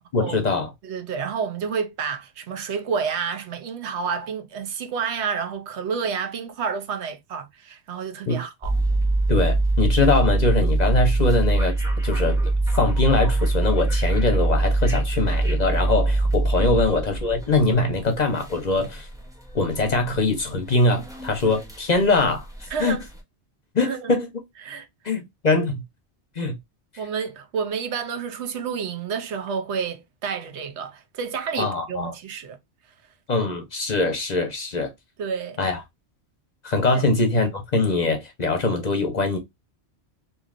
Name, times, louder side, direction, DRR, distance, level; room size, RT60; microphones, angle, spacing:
voice 1, 0.1-0.7 8.3-8.4 9.3-11.7 12.0-12.4 12.8-19.1 19.5-22.5 22.8-23.0 23.7-24.3 25.0-25.8 26.4-26.5 31.6-32.1 33.3-34.9 35.6-35.8 36.6-39.4, left 3 dB, 45° left, 0.7 m, -22 dB
voice 2, 0.8-8.7 16.7-16.8 22.7-23.0 23.8-24.1 24.6-24.9 27.0-32.6 35.2-35.6 36.9-37.1, right 6 dB, 75° right, 0.9 m, -29 dB
sound 1, 8.6-23.1, right 2 dB, 5° right, 0.5 m, -23 dB
3.1 x 2.6 x 2.4 m
omnidirectional pair, 1.2 m